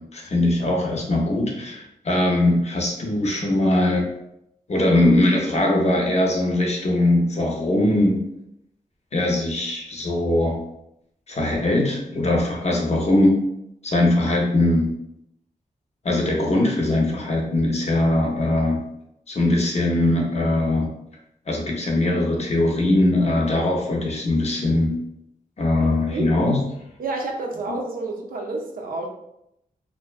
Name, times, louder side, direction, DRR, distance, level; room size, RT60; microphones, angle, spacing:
voice 1, 0.1-4.1 4.7-8.2 9.1-10.6 11.3-13.4 13.8-14.9 16.0-18.8 19.3-20.9 21.5-24.9 25.6-26.6 27.7-27.8, left 1 dB, 50° left, -1 dB, 0.6 m, -21 dB
voice 2, 27.0-29.1, right 3 dB, 75° right, 1 dB, 0.5 m, -29 dB
2.5 x 2.1 x 2.3 m, 0.80 s
wide cardioid pair, 90°, 15 cm